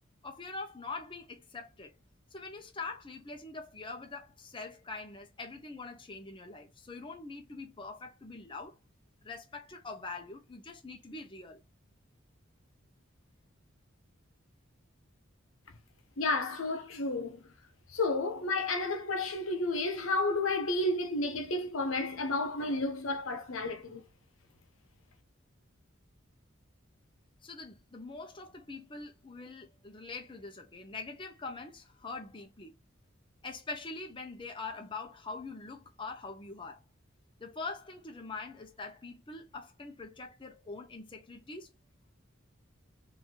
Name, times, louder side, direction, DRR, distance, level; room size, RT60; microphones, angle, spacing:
voice 1, 0.2-1.9 2.3-8.8 9.2-11.6 27.4-32.7 33.4-36.8 37.4-41.7, left 3 dB, 25° left, 0.7 m, -43 dB
voice 2, 16.2-17.5 17.9-24.0, left 2 dB, 80° left, 0.9 m, -31 dB
3.8 x 2.7 x 3.0 m
head